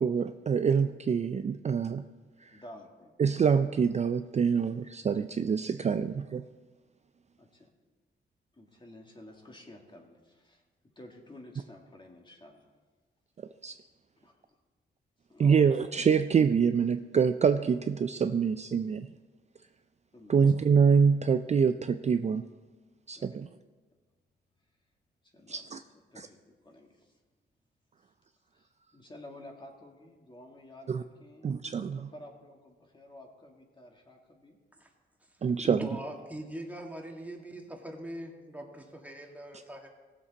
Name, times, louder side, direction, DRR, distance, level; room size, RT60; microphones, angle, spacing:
voice 1, 0.0-2.0 2.4-2.7 3.2-6.4 13.4-13.8 15.4-19.1 20.3-22.4 23.1-23.5 25.5-25.8 26.2-26.3 30.9-31.0 31.4-32.1 35.4-36.0, right 6 dB, 35° right, 9 dB, 0.4 m, -26 dB
voice 2, 2.5-3.1 7.4-7.7 8.5-12.7 14.2-14.4 15.3-15.9 20.1-20.4 23.1-23.3 25.3-27.2 28.5-31.6 32.1-34.6, left 1 dB, 25° left, 1 dB, 2.1 m, -51 dB
voice 3, 35.6-39.9, right 1 dB, 10° right, 1 dB, 1.9 m, -41 dB
18.0 x 7.4 x 4.1 m, 1.3 s
cardioid pair, 95°, 19 cm